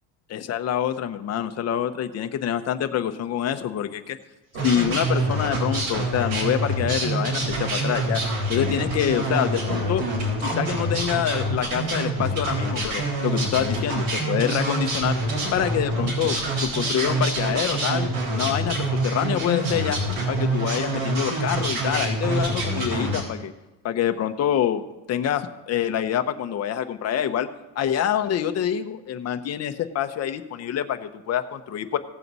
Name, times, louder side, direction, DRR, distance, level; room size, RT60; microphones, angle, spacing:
voice 1, 0.3-4.2 4.6-8.2 8.5-10.0 10.4-15.2 15.5-18.1 18.3-20.0 20.3-23.5 23.8-27.5 27.7-32.0, left 10 dB, 35° left, 7 dB, 0.8 m, -26 dB
sound 1, 4.5-23.2, right 1 dB, 75° right, 3.6 m, -26 dB
17.0 x 7.4 x 4.1 m, 1.1 s
cardioid pair, 140°, 46 cm